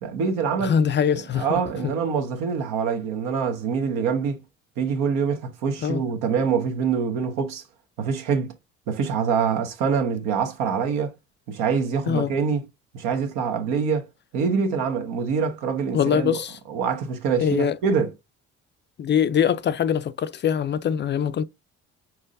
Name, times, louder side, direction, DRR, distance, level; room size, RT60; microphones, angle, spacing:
voice 1, 0.0-0.8 1.1-4.4 4.8-7.6 8.0-8.5 8.9-11.1 11.5-12.7 12.9-14.1 14.3-16.4 16.7-18.1, right 6 dB, 75° right, 1.2 m, -25 dB
voice 2, 0.6-1.9 5.8-6.0 12.1-12.3 15.9-16.6 17.4-17.8 19.0-21.5, left 8 dB, 35° left, 0.4 m, -23 dB
4.7 x 4.3 x 2.5 m
supercardioid pair, 75°, 32 cm